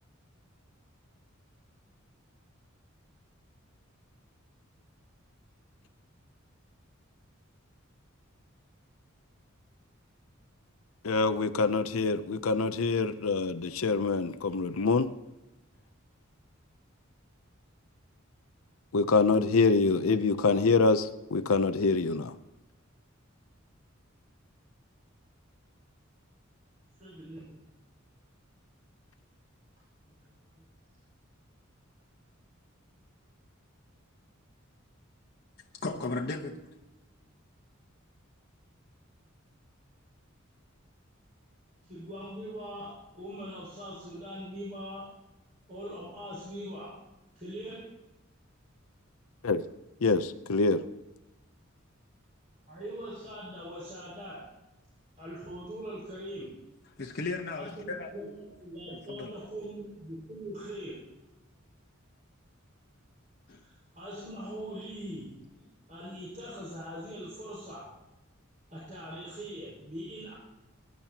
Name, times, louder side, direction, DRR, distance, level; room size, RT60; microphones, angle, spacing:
voice 1, 11.0-15.1 18.9-22.3 49.4-49.6 50.0-50.8, left 4 dB, 90° left, 0.6 m, -25 dB
voice 2, 27.0-27.6 30.1-30.7 41.8-45.1 45.7-47.0 47.3-48.0 52.7-54.5 55.2-56.6 57.5-61.1 63.6-67.9 68.7-70.3, equal, 40° right, 5.1 m, -42 dB
voice 3, 35.8-36.6 57.0-58.1 58.9-59.3 63.5-63.6, left 3 dB, 50° left, 1.1 m, -35 dB
22.0 x 10.5 x 2.9 m
head